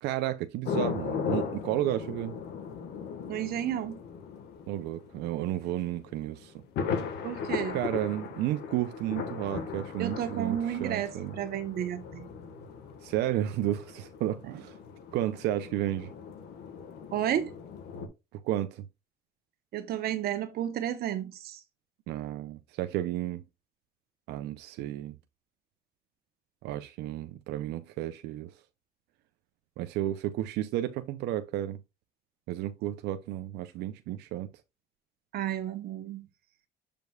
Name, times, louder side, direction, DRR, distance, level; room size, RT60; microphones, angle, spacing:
voice 1, 0.0-2.4 4.7-6.5 7.7-11.3 13.0-14.8 15.1-16.1 18.3-18.8 22.1-23.4 24.3-25.1 26.6-28.5 29.8-31.8 32.5-34.5, right 13 dB, 85° right, 0.6 m, -32 dB
sound 1, 0.7-18.1, left 6 dB, 80° left, 1.5 m, -38 dB
voice 2, 3.3-4.0 7.2-7.8 10.0-12.3 17.1-17.5 19.7-21.6 35.3-36.3, right 11 dB, 65° right, 1.0 m, -32 dB
7.7 x 5.1 x 2.4 m
cardioid pair, 110°, 17 cm